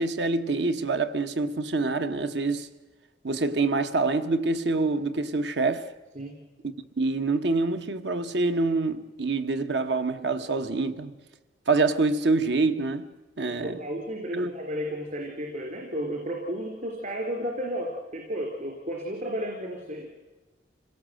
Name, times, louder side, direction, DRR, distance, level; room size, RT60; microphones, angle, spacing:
voice 1, 0.0-2.7 3.2-5.9 7.0-11.1 11.7-13.1 13.4-13.8 14.3-14.5, right 3 dB, 70° right, 1.1 m, -26 dB
voice 2, 13.4-20.1, equal, 50° right, 3.4 m, -33 dB
26.5 x 17.5 x 7.7 m
head